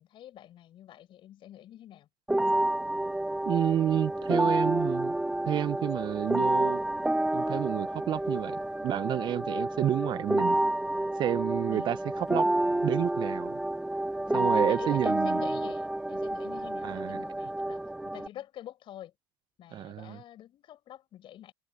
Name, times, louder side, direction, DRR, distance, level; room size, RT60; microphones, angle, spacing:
voice 1, 0.0-2.1 11.7-11.9 14.5-19.1 19.6-21.5, left 12 dB, 50° left, 6.8 m, -47 dB
sound 1, 2.3-18.3, right 1 dB, 5° right, 1.2 m, -29 dB
voice 2, 3.5-5.1 5.5-6.8 7.3-10.6 11.2-12.0 12.3-12.5 12.8-13.6 14.3-15.4 16.8-17.2 19.7-20.2, right 11 dB, 45° right, 0.8 m, -30 dB
hypercardioid pair, 85°, 11 cm